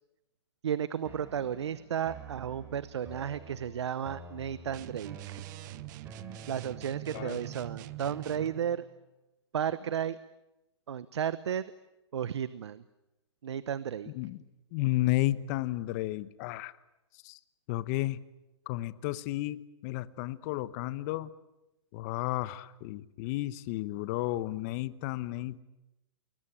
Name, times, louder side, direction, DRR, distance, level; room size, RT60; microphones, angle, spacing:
voice 1, 0.6-5.4 6.5-8.8 9.5-10.2 10.9-11.7 12.1-12.8 13.4-14.1, right 9 dB, 75° right, 16 dB, 1.0 m, -33 dB
sound 1, 1.0-9.0, right 5 dB, 15° right, 3.8 m, -49 dB
sound 2, 4.7-8.6, right 17 dB, 40° right, 1.1 m, -44 dB
voice 2, 14.7-16.7 17.2-17.4 17.7-18.2 18.7-21.3 21.9-25.6, left 17 dB, 35° left, 16 dB, 1.1 m, -32 dB
29.0 x 21.5 x 8.9 m, 0.96 s
hypercardioid pair, 140°, 15 cm